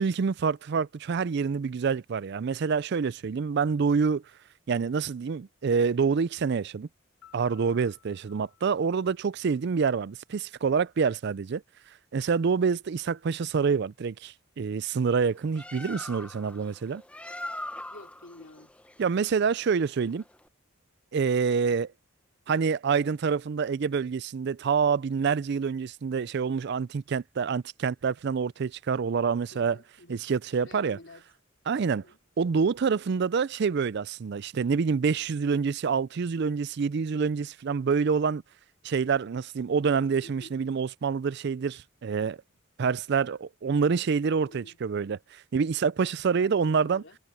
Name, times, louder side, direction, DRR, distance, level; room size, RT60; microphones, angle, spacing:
voice 1, 0.0-4.2 4.7-6.9 7.3-11.6 12.1-17.0 19.0-20.2 21.1-21.9 22.5-29.8 30.1-31.0 31.7-32.0 32.4-38.4 38.8-42.4 42.8-47.0, right 5 dB, 55° right, 0.4 m, -27 dB
Piano, 7.2-10.0, left 11 dB, 85° left, 4.3 m, -59 dB
Bird, 15.3-20.5, left 1 dB, 5° left, 0.9 m, -42 dB
voice 2, 17.9-18.8 29.5-31.3 31.9-32.2 40.2-40.6 44.5-44.8 46.4-47.2, left 2 dB, 60° left, 3.9 m, -50 dB
head